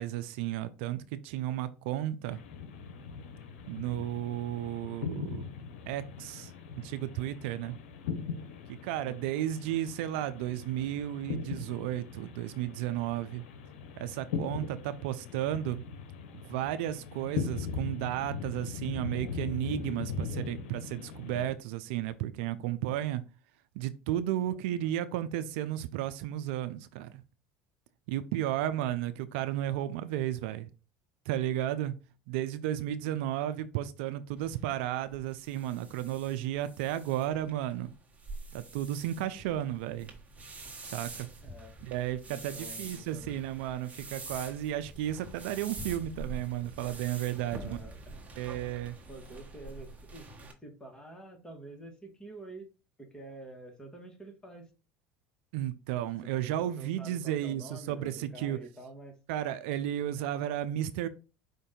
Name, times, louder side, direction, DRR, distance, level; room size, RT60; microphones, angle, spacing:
voice 1, 0.0-2.4 3.7-5.4 5.9-6.5 6.8-7.7 8.8-13.4 14.0-15.8 16.3-23.2 23.8-27.1 28.1-30.7 31.3-31.9 32.3-37.9 38.5-40.1 40.8-41.3 41.8-47.8 48.4-48.9 55.5-58.6 59.3-61.1, right 12 dB, 75° right, 0.4 m, -33 dB
sound 1, 2.3-21.5, left 6 dB, 80° left, 0.7 m, -40 dB
sound 2, 34.4-50.5, right 2 dB, 20° right, 1.3 m, -46 dB
voice 2, 41.4-41.8 42.3-43.3 47.5-48.0 49.1-52.7 53.0-54.7 56.3-59.2 60.2-60.3, right 1 dB, 10° left, 1.5 m, -48 dB
5.1 x 2.6 x 3.7 m
hypercardioid pair, 80°, 6 cm